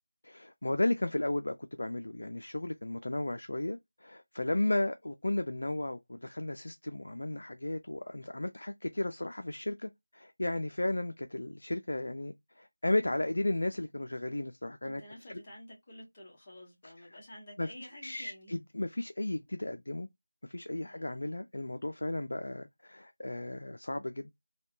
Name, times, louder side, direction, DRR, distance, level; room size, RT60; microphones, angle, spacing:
voice 1, 0.2-15.0 17.6-17.7 18.0-20.1 20.4-24.3, left 1 dB, 65° left, 0.4 m, -34 dB
voice 2, 14.8-18.6 20.7-21.2, left 1 dB, 25° left, 1.1 m, -51 dB
3.4 x 2.3 x 2.5 m
figure-of-eight pair, 170°, 0 cm